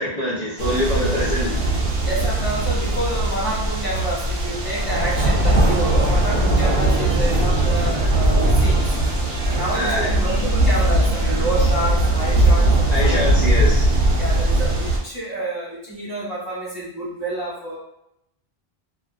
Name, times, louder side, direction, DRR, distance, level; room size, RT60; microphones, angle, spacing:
voice 1, 0.0-1.5 9.7-10.2 12.9-13.9, equal, 45° left, -8 dB, 0.7 m, -24 dB
sound 1, 0.6-15.0, right 1 dB, 80° right, 0.9 m, -19 dB
voice 2, 2.0-9.0 9.4-13.2 14.2-17.8, right 1 dB, 25° right, -10 dB, 0.9 m, -28 dB
sound 2, 4.6-11.4, right 1 dB, 50° right, 0.3 m, -38 dB
2.5 x 2.1 x 2.3 m, 0.78 s
omnidirectional pair, 1.0 m